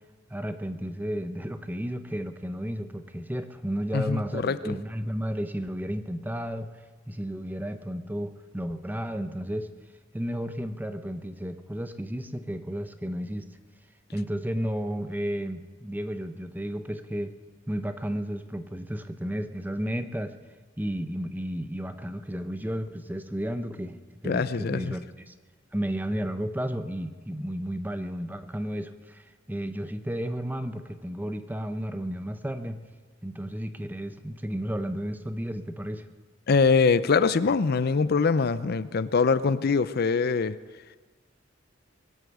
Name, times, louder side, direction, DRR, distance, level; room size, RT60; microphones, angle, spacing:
voice 1, 0.3-6.7 7.1-9.7 10.1-13.5 14.1-17.4 17.7-20.3 20.8-24.0 24.2-25.3 25.7-32.8 33.2-36.1, equal, 10° right, 9 dB, 0.8 m, -33 dB
voice 2, 3.9-4.7 24.3-24.9 36.5-40.5, left 4 dB, 55° left, 14 dB, 0.5 m, -23 dB
22.0 x 8.2 x 8.0 m, 1.4 s
head